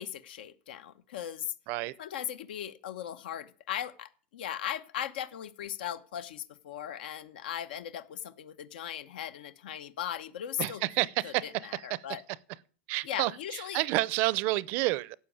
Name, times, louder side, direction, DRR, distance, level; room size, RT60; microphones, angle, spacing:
voice 1, 0.0-1.5 2.0-10.8 11.2-12.2 13.0-13.8, left 10 dB, 85° left, 1.0 m, -38 dB
voice 2, 10.6-12.0 12.9-15.2, right 19 dB, 40° right, 0.5 m, -30 dB
12.5 x 8.1 x 8.6 m
supercardioid pair, 170°, 5 cm